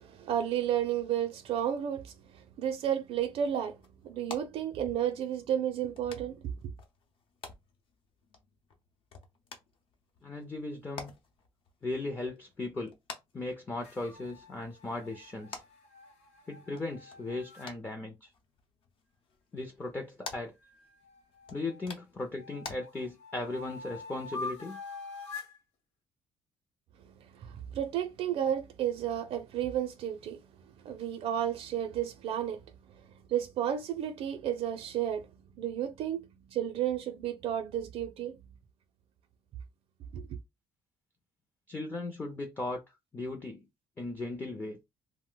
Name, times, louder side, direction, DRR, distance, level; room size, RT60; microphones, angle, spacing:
voice 1, 0.0-3.8 4.0-6.6 27.4-30.4 30.8-32.6 33.3-35.3 35.6-38.4 40.1-40.3, right 10 dB, 60° right, 0.5 m, -32 dB
sound 1, 2.9-22.8, left 4 dB, 55° left, 0.7 m, -51 dB
voice 2, 10.2-11.1 11.8-12.9 13.3-15.6 16.5-18.3 19.5-20.5 21.5-24.8 41.7-42.8 43.1-43.7 44.0-44.8, left 2 dB, 15° left, 0.5 m, -37 dB
sound 2, 13.8-17.7 20.6-21.9 22.4-25.6, left 3 dB, 90° left, 0.9 m, -45 dB
2.5 x 2.1 x 3.8 m
cardioid pair, 155°, 11 cm